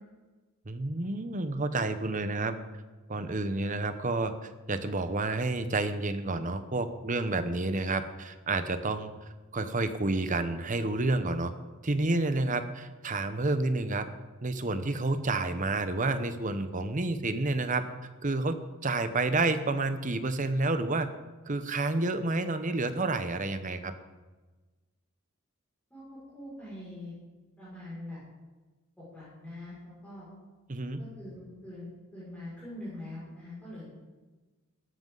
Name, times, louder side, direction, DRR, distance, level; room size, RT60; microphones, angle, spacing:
voice 1, 0.7-2.6 3.1-4.3 4.7-9.1 9.5-11.5 11.8-14.1 14.4-17.8 18.2-18.6 18.8-21.1 21.5-23.9 30.7-31.0, right 2 dB, 40° right, 10 dB, 0.9 m, -29 dB
voice 2, 26.3-27.1 27.6-28.2 29.0-30.3 31.0-31.9 32.1-33.8, left 1 dB, 5° left, -10 dB, 6.1 m, -43 dB
17.0 x 13.0 x 4.0 m, 1.2 s
head